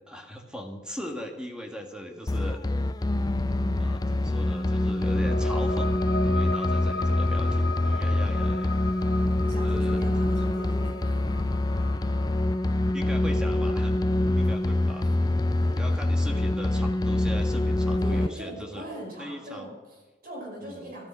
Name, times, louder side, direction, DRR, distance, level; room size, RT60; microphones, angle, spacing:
voice 1, 0.1-2.6 3.8-8.7 9.6-10.0 10.5-10.7 12.8-13.9 14.4-15.4 15.8-18.9 19.2-19.7 20.6-20.9, equal, 5° right, 3 dB, 1.8 m, -39 dB
sound 1, 2.3-18.3, left 1 dB, 20° left, 0.4 m, -25 dB
voice 2, 3.5-4.0 9.4-11.4 14.1-14.5 15.5-15.8 18.0-21.1, equal, 55° right, -1 dB, 5.3 m, -41 dB
sound 2, 4.5-15.6, left 3 dB, 70° left, 1.2 m, -38 dB
14.0 x 12.5 x 6.3 m, 1.3 s
head